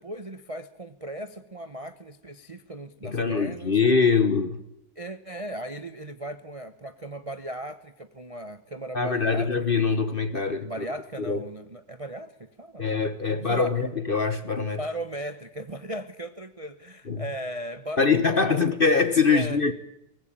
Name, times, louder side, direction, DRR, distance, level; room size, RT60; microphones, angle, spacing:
voice 1, 0.0-3.8 5.0-9.7 10.6-12.8 13.3-13.8 14.8-18.6 19.3-19.6, right 1 dB, 30° right, 0.6 m, -37 dB
voice 2, 3.0-4.6 8.9-10.7 11.2-11.4 12.8-14.8 17.1-17.2 18.0-19.7, left 5 dB, 35° left, 1.1 m, -23 dB
23.0 x 19.0 x 8.9 m
omnidirectional pair, 2.1 m